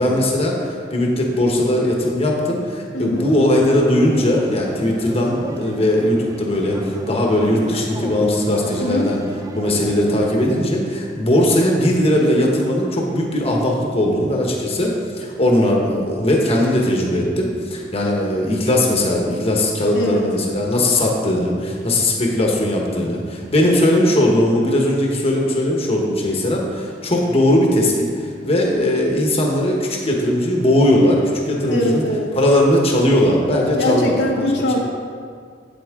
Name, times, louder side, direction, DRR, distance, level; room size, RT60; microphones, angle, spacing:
voice 1, 0.0-9.2 9.5-32.0 32.3-34.4, left 1 dB, 35° left, -1 dB, 1.1 m, -19 dB
voice 2, 2.9-3.2 8.8-9.1 19.9-20.3 31.7-32.3 33.8-34.8, left 1 dB, 65° left, -1 dB, 1.0 m, -21 dB
sound 1, 3.1-10.6, right 1 dB, 20° right, 0.4 m, -35 dB
8.5 x 8.0 x 3.6 m, 2.1 s
head